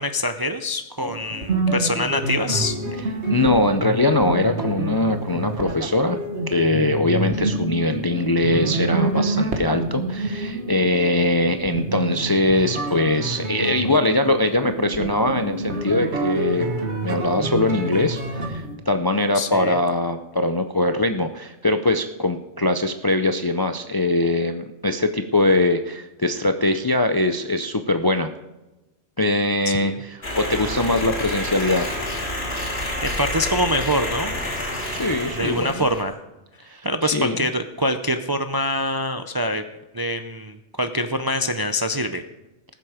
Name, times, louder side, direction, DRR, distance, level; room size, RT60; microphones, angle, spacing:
voice 1, 0.0-2.7 19.3-19.8 29.8-29.9 33.0-34.3 35.3-36.2 36.8-39.6 39.9-42.2, left 1 dB, 35° right, 8 dB, 0.4 m, -24 dB
sound 1, 1.0-18.8, right 2 dB, 70° right, 1.8 m, -27 dB
voice 2, 3.3-6.2 6.5-16.8 17.0-28.3 29.2-31.9 34.9-35.9 36.6-37.5, left 2 dB, 35° left, 7 dB, 0.4 m, -22 dB
sound 2, 30.2-36.0, left 1 dB, 60° left, 3.2 m, -28 dB
19.0 x 7.6 x 5.0 m, 1.0 s
omnidirectional pair, 1.2 m